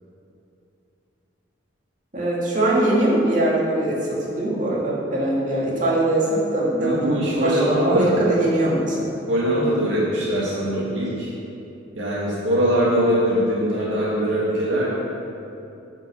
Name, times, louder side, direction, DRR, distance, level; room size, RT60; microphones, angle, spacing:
voice 1, 2.1-4.0 4.3-7.1 7.4-9.1, right 1 dB, 45° right, -6 dB, 2.4 m, -21 dB
voice 2, 6.8-8.1 9.3-11.3 11.9-14.9, equal, 90° right, -8 dB, 2.2 m, -22 dB
9.8 x 6.2 x 7.0 m, 2.8 s
head